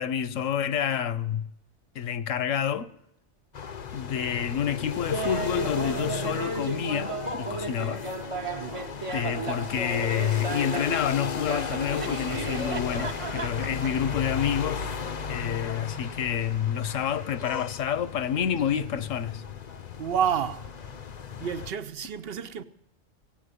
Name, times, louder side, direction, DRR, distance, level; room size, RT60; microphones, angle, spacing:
voice 1, 0.0-1.5 1.9-2.9 3.9-8.1 9.1-15.0 15.3-19.4, left 8 dB, 80° left, 1.1 m, -28 dB
sound 1, 3.5-21.7, left 6 dB, 45° left, 0.6 m, -35 dB
Laughter, 5.1-11.0 11.5-14.1, right 3 dB, 30° right, 0.8 m, -34 dB
voice 2, 8.5-8.9 20.0-21.0 21.4-22.6, right 8 dB, 55° right, 0.9 m, -30 dB
17.5 x 8.4 x 9.6 m
omnidirectional pair, 1.3 m